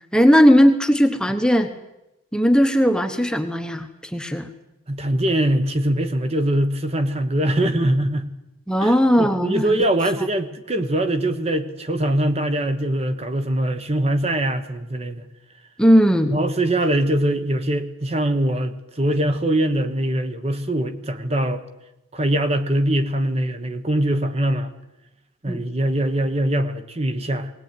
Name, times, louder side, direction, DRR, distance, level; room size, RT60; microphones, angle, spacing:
voice 1, 0.1-1.7 2.3-4.5 8.7-9.8 15.8-16.3 25.5-25.6, equal, 5° left, 6 dB, 1.1 m, -17 dB
voice 2, 4.9-8.3 8.8-15.3 16.2-21.6 22.1-24.7 25.4-27.5, right 1 dB, 30° right, 9 dB, 1.2 m, -22 dB
19.5 x 19.0 x 9.3 m, 0.91 s
head